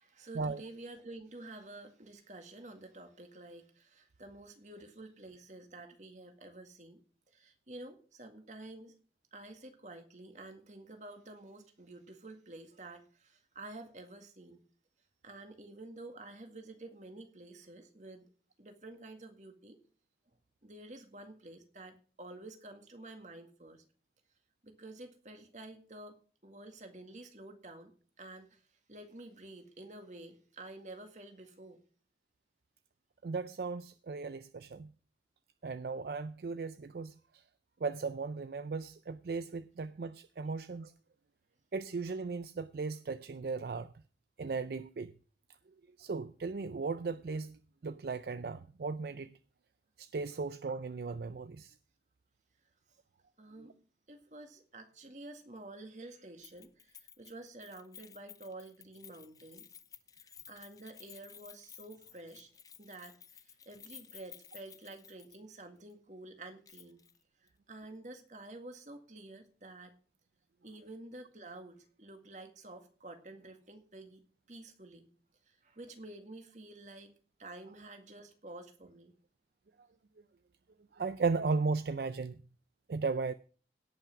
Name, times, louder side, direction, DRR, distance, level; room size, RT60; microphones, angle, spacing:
voice 1, 0.0-7.0 7.3-8.9 9.3-14.6 15.2-18.3 18.6-19.8 20.6-23.8 24.6-26.2 26.4-27.9 28.2-28.6 28.9-31.8 53.4-53.7 54.1-59.7 60.2-62.5 62.8-67.0 67.7-69.9 70.6-74.2 74.5-75.1 75.5-77.1 77.4-79.1, right 2 dB, 45° right, 1.9 m, -50 dB
voice 2, 33.2-34.9 35.6-37.1 37.8-40.9 41.7-43.9 44.4-45.1 46.0-49.3 50.0-51.7 53.6-53.7 80.9-82.4 82.9-83.3, right 4 dB, 65° right, 0.4 m, -36 dB
Keys jangling, 56.4-65.6 65.9-66.0 66.7-67.2 67.5-67.6, left 8 dB, 20° left, 0.6 m, -55 dB
17.5 x 5.8 x 5.9 m
head